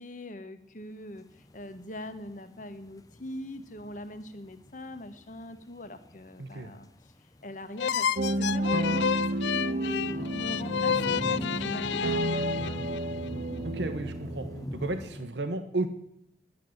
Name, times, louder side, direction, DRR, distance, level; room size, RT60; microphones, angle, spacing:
voice 1, 0.0-7.1 7.4-12.8, left 1 dB, 45° left, 9 dB, 1.3 m, -42 dB
sound 1, 1.0-15.3, left 1 dB, 20° left, 0.6 m, -44 dB
voice 2, 6.4-6.7 13.6-14.5 14.7-15.9, right 2 dB, 80° right, 9 dB, 1.1 m, -33 dB
sound 2, 7.8-13.3, left 7 dB, 80° left, 0.4 m, -30 dB
sound 3, 8.2-14.7, right 1 dB, 50° right, 0.6 m, -31 dB
11.0 x 9.0 x 7.8 m, 0.74 s
head